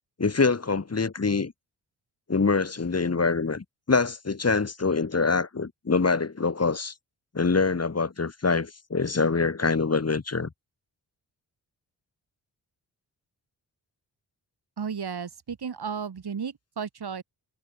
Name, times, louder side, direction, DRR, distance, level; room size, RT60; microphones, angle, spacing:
voice 1, 0.2-1.5 2.3-6.9 7.3-10.5, left 4 dB, 35° left, 2.6 m, -25 dB
voice 2, 14.8-17.2, right 6 dB, 60° right, 5.8 m, -34 dB
cardioid pair, 50°, 43 cm